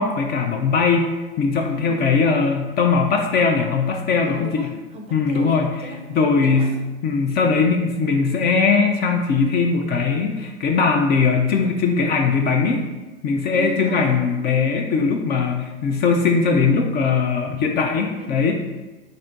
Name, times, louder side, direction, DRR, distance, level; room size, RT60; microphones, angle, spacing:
voice 1, 0.0-4.7 5.1-5.7 6.1-6.7 7.0-12.8 13.2-18.5, left 5 dB, 30° left, 3 dB, 0.4 m, -20 dB
voice 2, 1.7-2.1 4.2-6.7 13.5-14.6 18.2-18.3, right 1 dB, 20° right, 2 dB, 0.5 m, -35 dB
4.2 x 2.6 x 3.9 m, 1.2 s
figure-of-eight pair, 85°, 32 cm